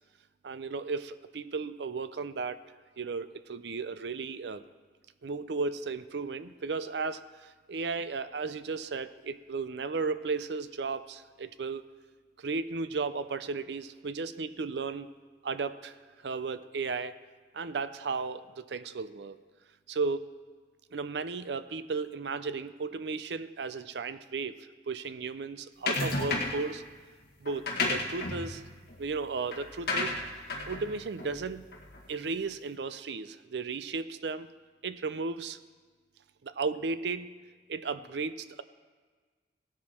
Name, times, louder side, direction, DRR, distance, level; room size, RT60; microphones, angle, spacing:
voice 1, 0.4-2.6 3.0-4.6 5.2-11.8 12.4-15.1 15.4-17.2 17.5-19.4 19.9-20.3 20.9-26.8 27.4-28.6 29.0-30.2 30.7-31.7 32.1-34.5 34.8-35.6 36.4-37.3 37.7-38.6, right 4 dB, 75° right, 13 dB, 0.5 m, -35 dB
sound 1, 25.9-26.7 27.4-32.1, left 2 dB, 60° left, 1.7 m, -33 dB
16.5 x 10.5 x 4.4 m, 1.4 s
head